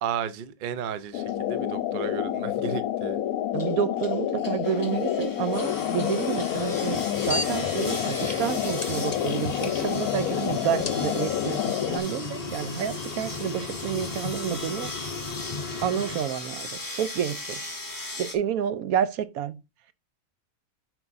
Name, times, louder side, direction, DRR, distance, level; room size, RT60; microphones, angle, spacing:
voice 1, 0.0-3.2, right 8 dB, 55° right, 0.6 m, -33 dB
sound 1, 1.1-12.0, left 11 dB, 75° left, 1.0 m, -29 dB
sound 2, 1.3-1.4 1.9-2.3 3.5-18.3, left 2 dB, 15° left, 1.1 m, -39 dB
voice 2, 3.5-14.9 15.8-17.6 18.2-19.6, right 9 dB, 80° right, 1.0 m, -29 dB
sound 3, 5.5-16.2, left 4 dB, 40° left, 0.6 m, -35 dB
9.6 x 4.6 x 2.6 m
omnidirectional pair, 1.5 m